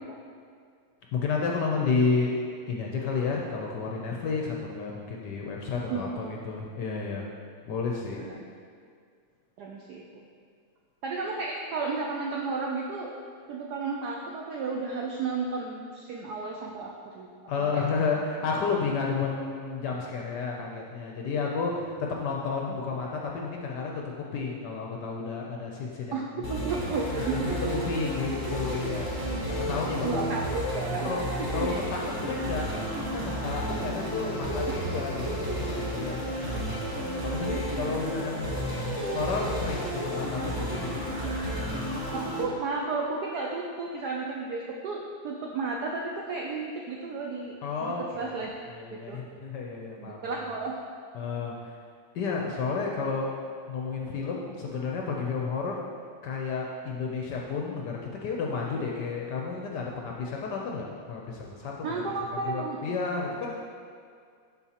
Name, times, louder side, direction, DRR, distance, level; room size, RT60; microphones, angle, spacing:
voice 1, 1.1-2.4 2.7-7.3 7.7-8.3 17.5-26.2 26.9-30.2 31.0-31.2 31.5-32.7 33.0-35.6 35.8-36.8 37.2-38.5 39.1-41.3 47.6-48.4 48.7-50.4 51.1-51.7 52.1-53.3 53.7-55.8 56.2-62.0 62.4-63.7, left 4 dB, 70° left, -1 dB, 1.0 m, -31 dB
voice 2, 5.9-6.6 8.1-8.4 9.6-10.3 11.0-13.2 13.5-17.3 17.6-17.8 22.7-22.8 26.1-27.8 30.0-31.1 31.4-31.7 34.2-34.8 42.1-48.5 48.9-49.2 50.0-50.8 61.8-62.8, right 4 dB, 80° right, -1 dB, 0.9 m, -33 dB
sound 1, 26.4-42.4, equal, 30° right, 0.4 m, -32 dB
11.0 x 4.2 x 2.9 m, 2.2 s
omnidirectional pair, 2.3 m